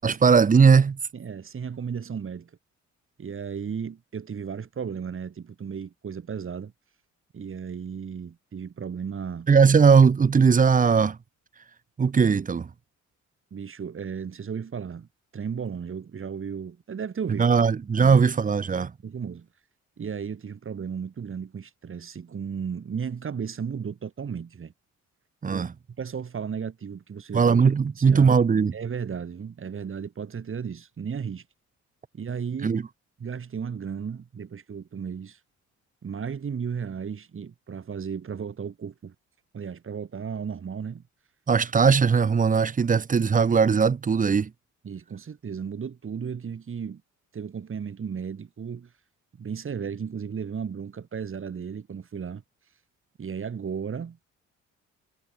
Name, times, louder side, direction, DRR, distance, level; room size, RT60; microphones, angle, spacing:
voice 1, 0.0-1.0 9.5-11.2 12.0-12.7 17.4-18.9 25.4-25.7 27.3-28.7 32.6-32.8 41.5-44.5, right 5 dB, 25° right, 0.8 m, -19 dB
voice 2, 1.1-2.5 3.2-6.7 7.3-9.5 13.5-15.1 15.3-17.5 18.0-18.2 19.0-19.5 20.0-24.7 25.5-25.7 26.0-27.6 28.0-28.4 28.7-31.4 32.1-32.7 33.2-35.4 36.0-39.1 39.5-41.0 44.8-47.0 47.3-48.9 49.4-52.4 53.2-54.2, right 6 dB, 45° right, 4.2 m, -34 dB
cardioid pair, 90°, 30 cm